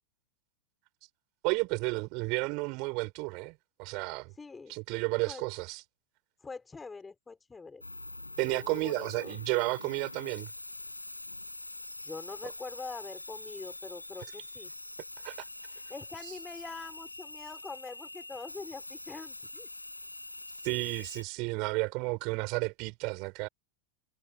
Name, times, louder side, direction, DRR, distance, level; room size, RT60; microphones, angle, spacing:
voice 1, 1.4-4.3 4.7-5.8 8.4-10.5 15.2-15.4 16.2-16.3 20.6-23.5, right 29 dB, 45° right, 6.4 m, -32 dB
voice 2, 4.4-4.8 5.3-5.4 6.4-7.8 8.5-9.3 12.0-14.7 15.9-19.7, left 4 dB, 10° left, 5.8 m, -44 dB
sound 1, 7.8-21.2, left 2 dB, 85° left, 6.7 m, -44 dB
figure-of-eight pair, 90°, 0 cm